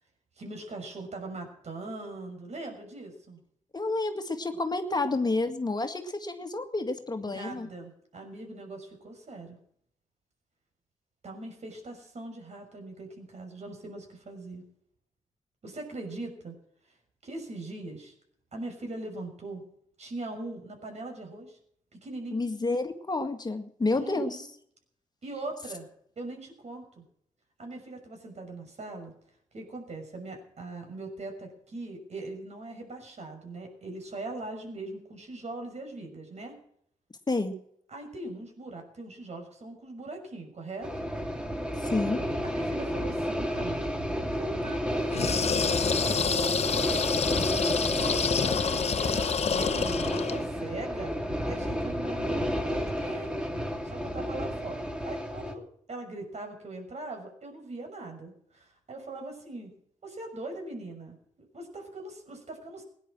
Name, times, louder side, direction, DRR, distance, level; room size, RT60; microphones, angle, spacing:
voice 1, 0.4-3.4 7.2-9.6 11.2-14.6 15.6-16.5 17.2-18.1 18.5-19.6 20.0-21.6 21.9-22.4 24.0-24.4 25.2-25.9 26.2-27.0 27.6-29.1 29.5-36.6 37.9-41.1 42.4-43.8 44.3-47.7 48.0-51.2 51.4-53.4 53.8-55.6 55.9-59.7 60.0-62.8, right 2 dB, 55° right, 4 dB, 6.2 m, -41 dB
voice 2, 3.7-7.7 22.3-24.4 37.3-37.6 41.8-42.2, left 2 dB, 30° left, 7 dB, 1.9 m, -29 dB
sound 1, 40.8-55.5, equal, 5° right, 2.8 m, -31 dB
sound 2, 45.1-50.4, left 6 dB, 50° left, 1.1 m, -28 dB
17.5 x 10.5 x 7.5 m, 0.67 s
cardioid pair, 65°, 14 cm